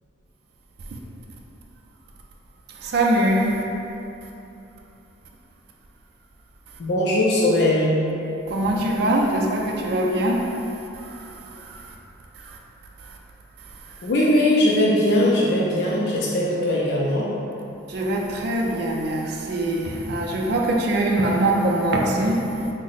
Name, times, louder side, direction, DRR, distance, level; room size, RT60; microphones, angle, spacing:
voice 1, 2.8-3.6 8.5-10.5 11.1-11.2 11.7-11.8 12.4-12.6 17.9-22.7, right 1 dB, 55° right, -1 dB, 0.3 m, -22 dB
voice 2, 6.8-8.0 14.0-17.3, left 1 dB, 55° left, -5 dB, 0.4 m, -20 dB
3.5 x 2.0 x 3.9 m, 2.8 s
head